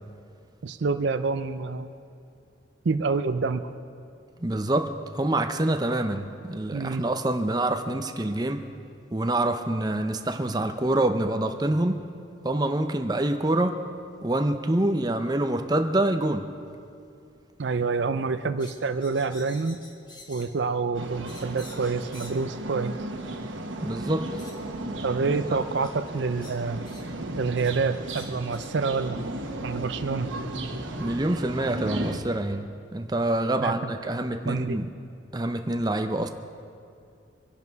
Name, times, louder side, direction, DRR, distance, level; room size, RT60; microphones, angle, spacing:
voice 1, 0.6-1.9 2.8-3.7 6.7-7.1 17.6-19.8 20.3-22.9 25.0-26.8 27.4-29.2 29.6-30.3 33.6-33.9 34.5-34.8, right 4 dB, 65° right, 11 dB, 0.5 m, -27 dB
voice 2, 4.4-8.6 9.1-12.0 12.4-13.8 14.2-16.4 23.8-24.3 25.3-25.4 31.0-34.9 35.3-36.3, right 1 dB, 20° right, 6 dB, 0.7 m, -26 dB
sound 1, 18.6-20.6 21.3-22.5 23.6-23.7 24.4-24.6 25.8-25.9 26.3-27.1 27.5-27.8 28.1-28.8, left 2 dB, 20° left, 1.5 m, -49 dB
sound 2, 20.9-32.2, right 1 dB, 85° right, 1.4 m, -35 dB
24.5 x 11.0 x 4.7 m, 2.4 s
head